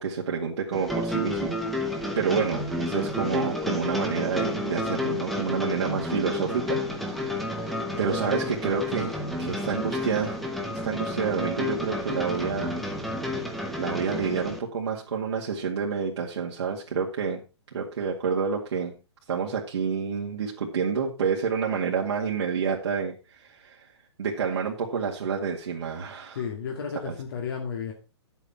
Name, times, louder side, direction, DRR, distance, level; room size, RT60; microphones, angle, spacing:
voice 1, 0.0-1.6 1.9-10.4 10.7-12.8 13.8-17.4 17.7-18.9 19.3-23.9 24.2-26.4 27.1-27.2, right 6 dB, 70° right, -2 dB, 2.1 m, -29 dB
sound 1, 0.7-14.6, left 1 dB, ahead, 1.1 m, -31 dB
voice 2, 26.3-27.9, left 6 dB, 50° left, 1 dB, 2.2 m, -32 dB
10.5 x 8.3 x 4.3 m, 0.30 s
hypercardioid pair, 165°, 15 cm